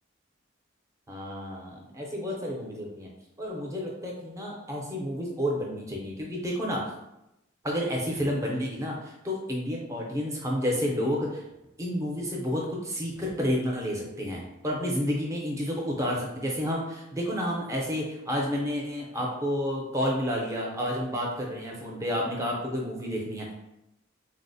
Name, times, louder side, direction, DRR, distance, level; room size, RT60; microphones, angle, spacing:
voice 1, 1.1-3.1 3.4-6.8 7.6-11.4 11.8-23.5, equal, 15° right, -2 dB, 0.5 m, -30 dB
3.8 x 2.0 x 2.6 m, 0.89 s
head